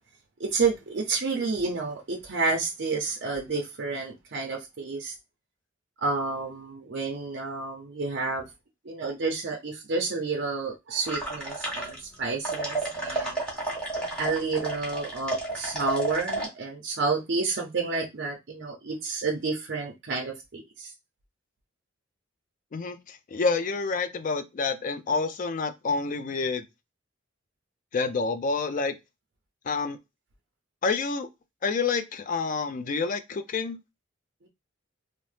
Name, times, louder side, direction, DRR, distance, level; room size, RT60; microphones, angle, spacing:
voice 1, 0.4-5.1 6.0-8.5 8.8-13.4 14.2-20.9, right 4 dB, 60° right, 0.6 m, -30 dB
sound 1, 11.1-12.2 12.4-16.5, right 2 dB, 5° left, 1.0 m, -31 dB
voice 2, 22.7-26.6 27.9-29.0 29.7-30.0 30.8-31.3 31.6-33.8, left 4 dB, 40° left, 0.3 m, -28 dB
2.7 x 2.0 x 3.2 m
head